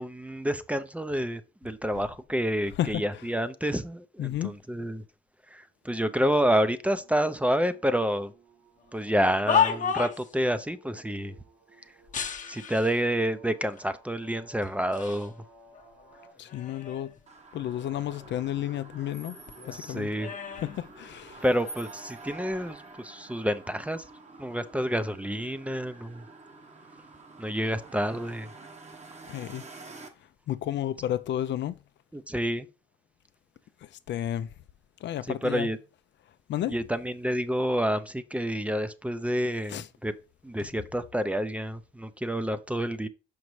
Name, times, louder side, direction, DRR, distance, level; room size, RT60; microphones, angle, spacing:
voice 1, 0.0-5.0 5.5-8.3 8.9-11.3 12.5-15.3 19.7-20.3 21.4-24.0 24.4-26.2 27.4-28.5 32.1-32.7 35.3-35.8 36.7-40.1 40.4-43.1, equal, 5° right, 0.5 m, -29 dB
voice 2, 4.2-4.6 16.4-17.1 17.5-19.4 19.6-20.1 20.6-21.4 29.3-29.6 30.5-31.7 34.1-34.5 35.0-35.7 36.5-36.8 39.7-39.9 40.6-40.7, left 12 dB, 65° left, 0.4 m, -31 dB
sound 1, 6.0-16.3, right 2 dB, 80° right, 3.6 m, -58 dB
sound 2, 9.1-10.4 12.1-13.0 13.8-13.9 14.6-15.3 15.7-17.2 17.6-19.2 19.5-21.6 22.4-22.6, left 7 dB, 40° left, 0.9 m, -32 dB
sound 3, 17.3-30.1, right 2 dB, 35° right, 1.0 m, -48 dB
5.8 x 5.3 x 3.1 m
cardioid pair, 90°, 20 cm